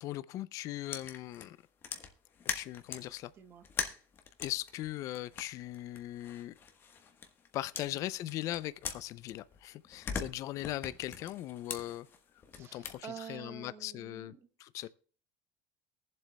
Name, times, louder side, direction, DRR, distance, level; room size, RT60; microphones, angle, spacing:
voice 1, 0.0-1.6 2.5-3.3 4.4-6.5 7.5-12.1 12.6-14.3 14.6-14.9, left 14 dB, 50° left, 0.4 m, -39 dB
sound 1, 0.9-3.1 3.6-7.5 7.7-9.6 9.8-13.0, left 6 dB, 30° left, 1.2 m, -42 dB
voice 2, 3.3-3.7 7.8-8.0 12.5-14.4 14.8-14.9, right 8 dB, 35° right, 1.3 m, -48 dB
22.5 x 7.5 x 2.2 m
cardioid pair, 135°, 7 cm